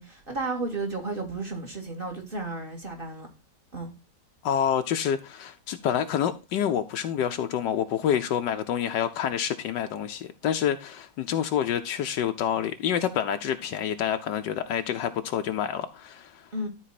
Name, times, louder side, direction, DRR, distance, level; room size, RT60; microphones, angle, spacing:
voice 1, 0.0-3.3 3.7-3.9 16.5-16.7, right 2 dB, 30° right, 2.3 m, -33 dB
voice 2, 4.4-16.5, left 9 dB, 75° left, 1.3 m, -28 dB
12.5 x 4.1 x 4.1 m
omnidirectional pair, 1.9 m